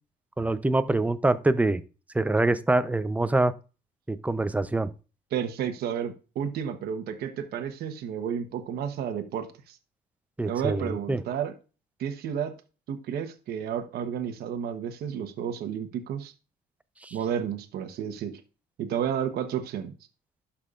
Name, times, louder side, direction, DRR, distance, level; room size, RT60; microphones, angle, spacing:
voice 1, 0.4-1.8 2.1-3.5 4.1-4.9 10.4-11.2 17.0-17.2, right 2 dB, 10° right, 12 dB, 0.6 m, -25 dB
voice 2, 5.3-9.8 10.5-11.5 12.0-12.5 12.9-16.3 17.1-18.4 18.8-19.9, right 8 dB, 70° right, 6 dB, 1.1 m, -31 dB
12.0 x 5.7 x 2.5 m, 0.33 s
cardioid pair, 110°, 17 cm